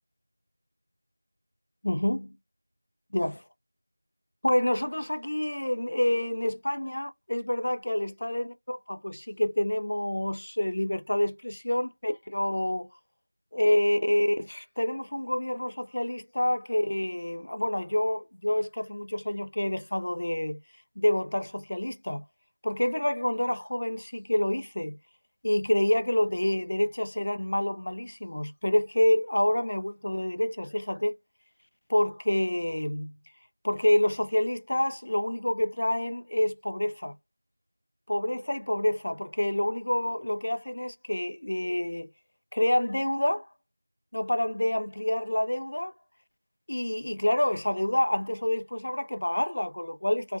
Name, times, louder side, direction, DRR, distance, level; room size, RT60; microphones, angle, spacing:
voice 1, 1.8-2.3 3.1-3.4 4.4-12.9 13.5-20.6 21.0-22.2 22.6-25.0 25.4-31.1 31.9-33.1 33.6-37.1 38.1-42.1 42.5-43.4 44.1-45.9 46.7-50.4, left 1 dB, 50° left, 0.3 m, -27 dB
2.6 x 2.1 x 2.5 m
figure-of-eight pair, 175°, 0 cm